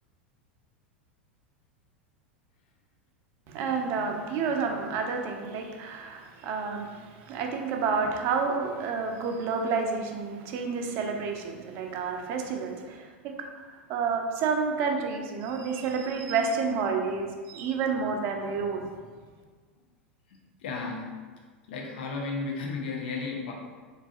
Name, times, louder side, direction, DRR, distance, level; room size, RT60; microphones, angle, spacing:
voice 1, 3.5-13.4 13.7-18.9, right 5 dB, 40° right, 2 dB, 0.4 m, -30 dB
voice 2, 20.3-21.1 21.7-23.5, left 4 dB, 60° left, 0 dB, 0.5 m, -34 dB
3.9 x 2.4 x 2.4 m, 1.5 s
figure-of-eight pair, 85°, 6 cm